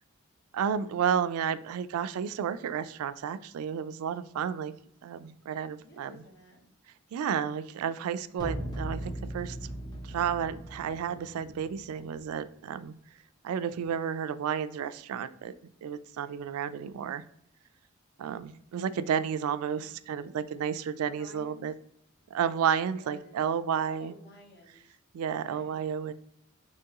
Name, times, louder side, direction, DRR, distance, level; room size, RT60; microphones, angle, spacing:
voice 1, 0.5-4.7 5.0-6.2 7.1-9.6 10.0-12.9 13.4-15.5 15.8-17.2 18.2-21.7 22.3-24.1 25.1-26.1, right 8 dB, 85° right, 15 dB, 0.3 m, -31 dB
voice 2, 5.8-6.7 19.7-19.9 21.0-21.6 22.9-23.4 24.0-25.0 25.3-25.8, left 1 dB, 50° left, 1 dB, 1.0 m, -53 dB
sound 1, 8.4-12.4, right 1 dB, 20° left, 0.7 m, -39 dB
3.5 x 3.0 x 2.9 m, 0.72 s
head